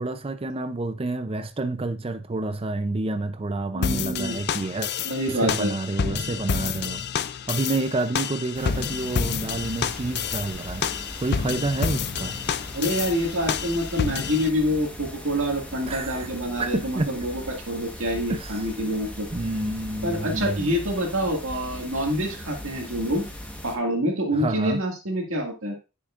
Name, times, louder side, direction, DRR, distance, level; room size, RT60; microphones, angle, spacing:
voice 1, 0.0-4.9 5.3-7.0 7.5-10.9 11.2-12.4 15.9-16.3 16.6-17.1 18.3-18.7 19.3-20.7 24.3-24.8, right 2 dB, 25° right, 0.5 m, -29 dB
voice 2, 3.7-4.4 5.0-5.7 12.7-19.3 20.0-23.2 23.6-25.8, equal, 65° right, 2.0 m, -26 dB
sound 1, 3.8-14.5, left 7 dB, 50° left, 0.4 m, -29 dB
sound 2, 8.5-23.8, equal, 5° left, 1.3 m, -39 dB
10.0 x 6.7 x 2.5 m
head